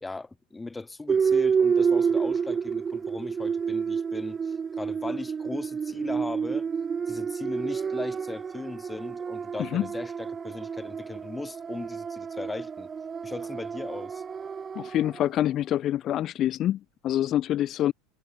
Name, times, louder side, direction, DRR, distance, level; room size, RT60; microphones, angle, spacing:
voice 1, 0.0-6.7 7.1-12.9 13.2-14.2, left 3 dB, 10° left, 0.9 m, -38 dB
sound 1, 1.1-15.3, right 6 dB, 25° right, 0.4 m, -29 dB
voice 2, 14.8-17.9, left 12 dB, 40° left, 0.4 m, -26 dB
figure-of-eight pair, 75°, 0 cm